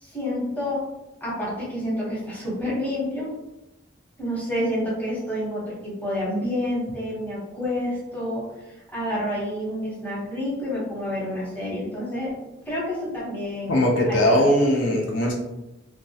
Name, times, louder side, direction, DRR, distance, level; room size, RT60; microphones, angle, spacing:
voice 1, 0.0-0.8 1.2-3.3 4.2-12.3 12.7-14.4, left 1 dB, 10° left, -7 dB, 0.8 m, -29 dB
voice 2, 13.7-15.3, left 1 dB, 75° left, 0 dB, 0.5 m, -20 dB
2.2 x 2.1 x 2.6 m, 0.95 s
head